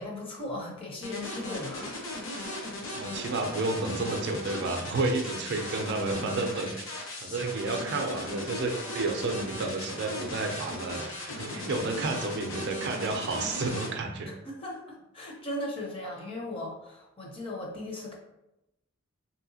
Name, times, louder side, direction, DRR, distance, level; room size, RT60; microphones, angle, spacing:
voice 1, 0.0-2.0 14.3-18.2, left 1 dB, 25° left, -1 dB, 0.6 m, -37 dB
sound 1, 1.0-13.9, left 1 dB, 65° left, 0.8 m, -37 dB
voice 2, 3.0-6.8 7.2-14.3, right 3 dB, 55° right, 4 dB, 0.4 m, -31 dB
3.2 x 2.7 x 2.7 m, 0.89 s
head